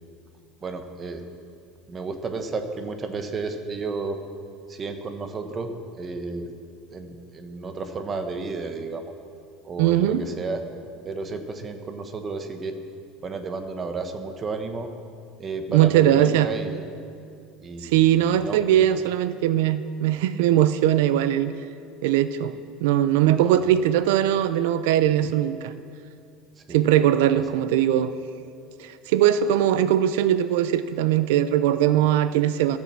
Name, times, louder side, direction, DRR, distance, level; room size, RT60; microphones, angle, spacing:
voice 1, 0.6-1.2 1.9-4.2 4.7-5.7 6.0-6.5 6.9-9.1 9.6-10.6 11.0-12.7 13.2-14.9 15.4-16.9 17.6-18.6 23.3-23.6 26.6-26.8 27.3-27.4, right 3 dB, 20° right, 7 dB, 0.8 m, -32 dB
voice 2, 9.8-10.2 15.7-16.5 17.8-21.5 22.0-22.6 22.8-25.7 26.7-28.1 28.8-32.8, right 11 dB, 80° right, 13 dB, 0.4 m, -20 dB
13.0 x 7.0 x 7.4 m, 2.4 s
cardioid pair, 170°, 0 cm